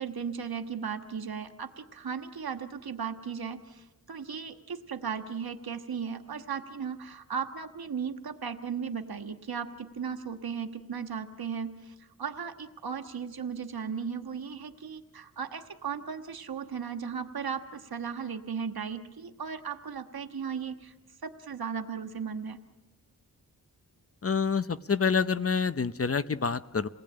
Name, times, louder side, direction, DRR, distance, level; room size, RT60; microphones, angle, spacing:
voice 1, 0.0-20.9 21.2-22.6, right 6 dB, 80° right, 7 dB, 1.6 m, -36 dB
voice 2, 24.2-26.9, left 5 dB, 40° left, 13 dB, 0.8 m, -27 dB
28.0 x 19.0 x 8.8 m, 1.1 s
wide cardioid pair, 85°, 36 cm